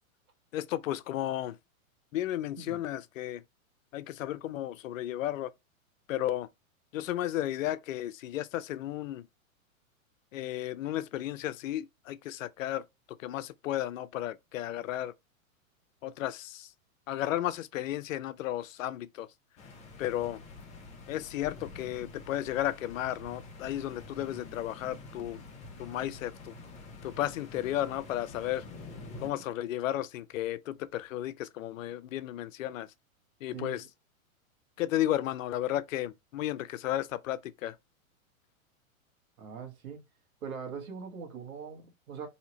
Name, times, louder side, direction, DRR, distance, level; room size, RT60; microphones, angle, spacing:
voice 1, 0.5-1.6 2.1-3.4 3.9-5.5 6.1-6.5 6.9-9.3 10.3-15.1 16.0-16.7 17.1-19.3 20.0-20.4 21.1-25.4 25.8-26.5 27.0-28.7 29.2-32.9 33.4-33.9 34.8-37.8, left 13 dB, 65° left, 0.5 m, -33 dB
sound 1, 19.6-29.3, left 3 dB, 15° left, 0.6 m, -47 dB
voice 2, 33.5-33.8 39.4-40.0 40.4-42.3, right 6 dB, 80° right, 1.4 m, -41 dB
3.1 x 2.8 x 2.9 m
hypercardioid pair, 130°, 42 cm